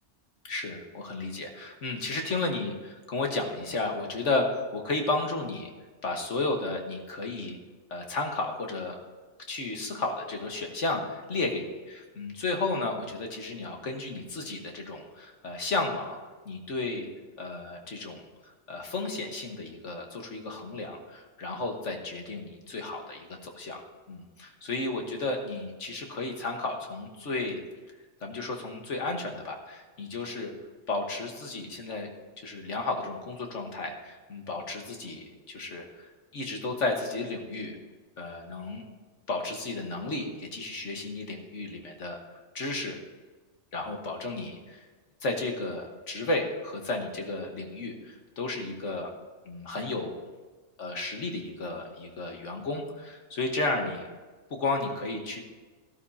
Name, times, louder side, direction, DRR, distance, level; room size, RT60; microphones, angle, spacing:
voice 1, 0.4-5.7 6.0-7.6 7.9-9.0 9.5-16.2 16.5-17.1 17.4-18.2 18.7-23.8 24.1-27.6 28.2-30.5 30.9-32.1 32.4-37.7 38.2-38.8 39.3-43.0 43.7-44.9 45.2-49.1 49.5-50.2 50.8-54.1 54.5-55.4, left 2 dB, 85° left, 2 dB, 1.8 m, -33 dB
17.0 x 12.0 x 2.8 m, 1.3 s
omnidirectional pair, 1.2 m